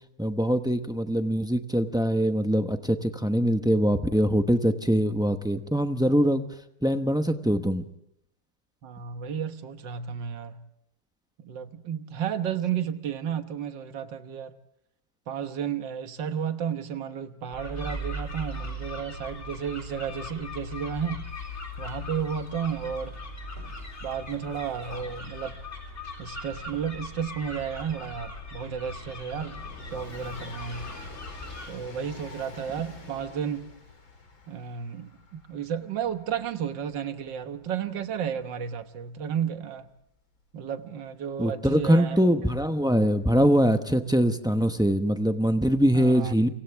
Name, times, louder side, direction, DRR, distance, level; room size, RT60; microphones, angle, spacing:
voice 1, 0.2-6.5 6.8-7.8 41.4-46.5, equal, 5° right, 0.3 m, -23 dB
voice 2, 8.8-10.6 11.4-14.6 15.3-21.3 21.8-23.2 24.0-25.6 26.2-30.9 31.7-33.7 34.5-39.9 40.5-42.2 45.9-46.3, right 8 dB, 70° right, 1.9 m, -32 dB
sound 1, 17.5-31.7, left 1 dB, 35° left, 3.9 m, -39 dB
Train, 24.0-40.6 41.6-41.7, left 4 dB, 80° left, 4.5 m, -48 dB
30.0 x 24.5 x 3.5 m
omnidirectional pair, 2.1 m